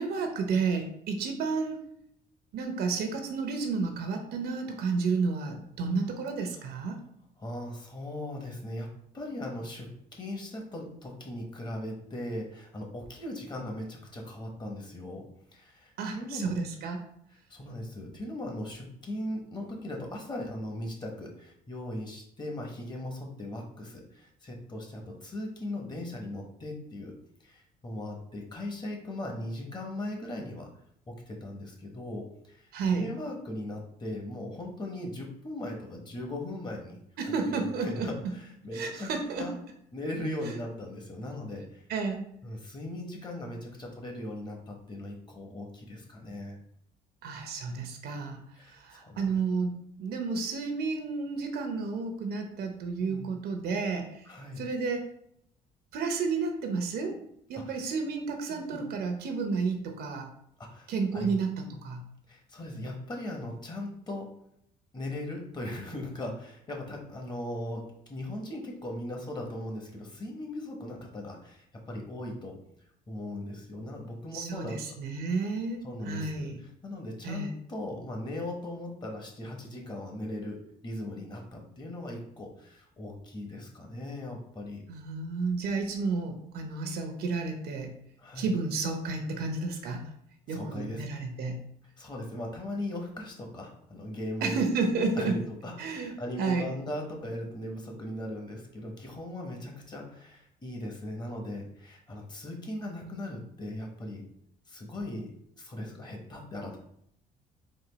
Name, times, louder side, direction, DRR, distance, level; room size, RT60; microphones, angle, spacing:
voice 1, 0.0-1.8 2.5-7.0 16.0-17.0 32.7-33.0 37.2-38.1 38.7-39.5 41.9-42.3 47.2-48.4 48.7-49.7 50.0-54.3 54.6-55.1 55.9-57.2 57.5-60.3 60.9-62.0 74.3-76.6 77.2-77.5 84.9-87.9 88.4-90.0 90.5-91.6 94.4-95.4 95.8-96.7, right 4 dB, 70° right, 5 dB, 0.8 m, -31 dB
voice 2, 7.4-8.9 9.1-15.2 15.5-16.5 17.5-27.1 27.4-30.7 31.3-37.0 37.5-39.1 39.4-39.5 39.9-41.8 42.4-46.6 48.5-49.4 53.0-53.3 54.3-54.6 57.7-57.8 58.5-58.8 60.6-61.3 62.3-64.3 64.9-72.5 73.1-74.8 75.8-80.6 80.8-84.8 88.2-88.5 90.5-91.1 92.0-94.6 95.1-104.3 104.7-105.3 105.6-106.8, left 1 dB, 25° left, 1 dB, 1.1 m, -38 dB
4.3 x 2.5 x 3.9 m, 0.70 s
cardioid pair, 110°, 17 cm